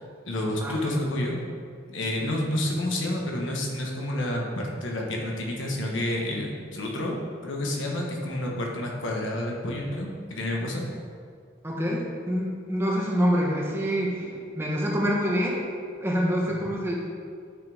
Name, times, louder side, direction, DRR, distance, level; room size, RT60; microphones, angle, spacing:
voice 1, 0.0-1.4 1.9-7.2 7.4-10.8, left 1 dB, 80° left, -1 dB, 1.3 m, -29 dB
voice 2, 0.6-1.0 2.2-2.3 11.6-15.6 16.0-16.9, equal, 10° right, -3 dB, 1.0 m, -26 dB
9.8 x 6.2 x 3.5 m, 2.1 s
head